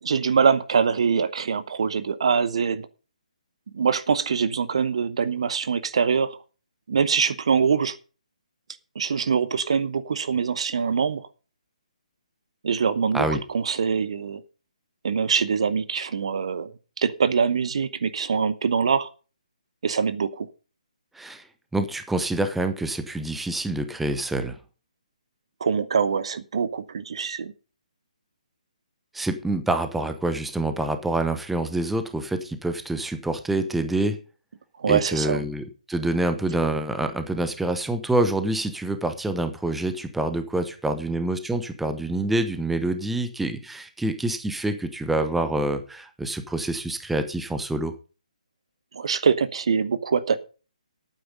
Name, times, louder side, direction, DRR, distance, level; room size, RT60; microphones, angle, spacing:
voice 1, 0.0-2.9 3.7-6.4 6.9-8.0 8.9-11.3 12.6-14.4 15.0-16.7 17.0-19.1 19.8-20.5 25.6-27.5 34.8-35.4 48.9-50.4, right 6 dB, 50° right, 13 dB, 0.9 m, -23 dB
voice 2, 21.1-21.5 21.7-24.6 29.1-34.2 34.9-47.9, right 2 dB, 5° right, 9 dB, 0.9 m, -26 dB
11.5 x 9.2 x 5.3 m, 0.36 s
figure-of-eight pair, 140°, 4 cm